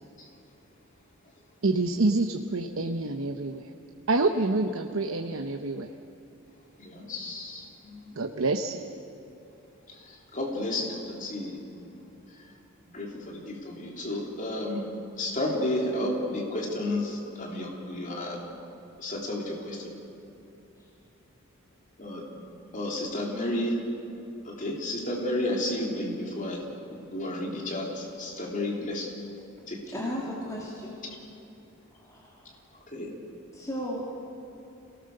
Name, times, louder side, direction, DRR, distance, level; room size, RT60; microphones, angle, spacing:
voice 1, 1.6-3.6 4.1-5.9 8.2-8.9, right 2 dB, 70° right, 5 dB, 0.9 m, -27 dB
voice 2, 6.8-8.1 10.3-11.6 12.9-18.4 19.0-19.8 22.0-22.2 22.7-23.8 24.5-26.6 27.1-29.1 29.7-29.8 32.9-33.1, left 1 dB, 40° left, -1 dB, 3.5 m, -32 dB
voice 3, 29.9-30.9 31.9-32.6 33.5-34.0, equal, 15° left, -5 dB, 2.8 m, -36 dB
28.0 x 18.5 x 6.7 m, 2.9 s
head